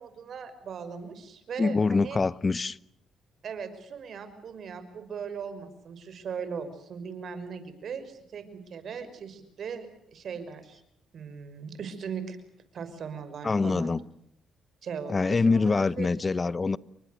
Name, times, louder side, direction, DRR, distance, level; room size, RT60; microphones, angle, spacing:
voice 1, 0.0-2.2 3.4-10.8 11.1-12.4 12.7-13.9 14.8-16.1, right 6 dB, 60° right, 5.9 m, -39 dB
voice 2, 1.6-2.8 13.4-14.0 15.1-16.8, left 4 dB, 30° left, 1.0 m, -25 dB
29.5 x 24.0 x 6.7 m
cardioid pair, 90°, 0 cm